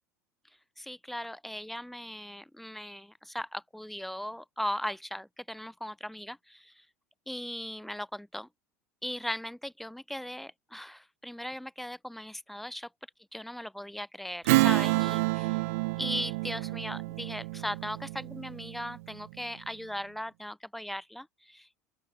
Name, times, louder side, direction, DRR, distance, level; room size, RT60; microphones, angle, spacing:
voice 1, 0.8-6.8 7.3-8.5 9.0-12.9 13.3-15.6 16.0-21.7, equal, ahead, 0.4 m, -38 dB
Strum, 14.5-19.4, right 22 dB, 60° right, 0.6 m, -29 dB
open air
figure-of-eight pair, 70°, 9 cm